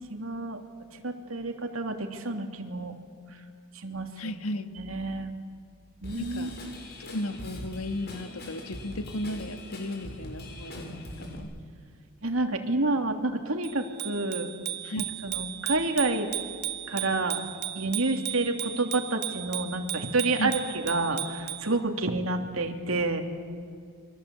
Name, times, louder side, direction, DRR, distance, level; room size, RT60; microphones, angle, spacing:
voice 1, 0.1-0.6 1.0-3.0 3.8-4.4 4.8-5.3 6.0-6.7 12.2-14.5 15.0-16.3 16.9-17.4 17.7-23.2, right 2 dB, 70° right, 4 dB, 2.9 m, -29 dB
voice 2, 4.2-4.7 6.2-6.6 7.0-11.5 14.8-15.0 20.3-20.6, left 1 dB, 75° left, 8 dB, 1.8 m, -35 dB
Drum kit / Drum, 6.0-11.4, left 1 dB, 50° left, 7.2 m, -42 dB
Bicycle bell, 13.6-21.7, right 13 dB, 55° right, 1.8 m, -36 dB
29.0 x 24.0 x 8.4 m, 2.2 s
head